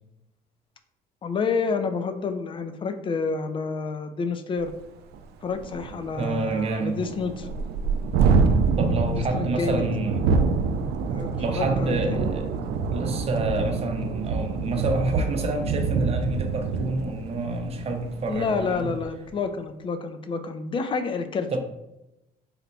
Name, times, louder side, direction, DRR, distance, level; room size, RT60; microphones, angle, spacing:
voice 1, 1.2-4.7 5.4-7.5 9.1-9.8 11.1-12.3 18.3-21.6, left 5 dB, 30° left, 8 dB, 0.4 m, -29 dB
Thunderstorm, 4.7-4.8 5.1-5.2 5.5-19.1, right 4 dB, 75° right, 0.4 m, -26 dB
voice 2, 6.2-7.0 8.8-10.2 11.4-12.5 12.9-18.9 21.5-21.6, right 2 dB, 35° right, 4 dB, 0.7 m, -28 dB
4.1 x 2.1 x 4.0 m, 0.91 s
cardioid pair, 110°, 17 cm